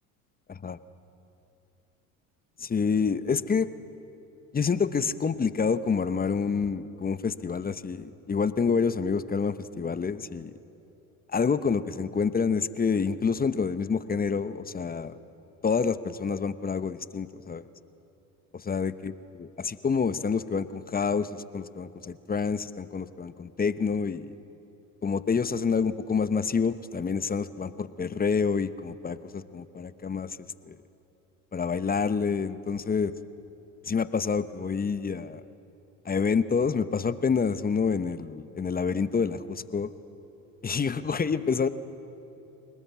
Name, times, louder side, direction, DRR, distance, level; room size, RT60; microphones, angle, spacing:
voice 1, 2.6-3.7 4.5-10.5 11.3-15.2 15.6-17.7 18.5-19.1 19.6-24.3 25.0-30.4 30.7-30.8 31.5-33.1 33.8-35.4 36.0-39.9 40.6-41.7, left 5 dB, 20° left, 13 dB, 0.9 m, -27 dB
26.5 x 19.5 x 8.4 m, 2.9 s
hypercardioid pair, 75°, 39 cm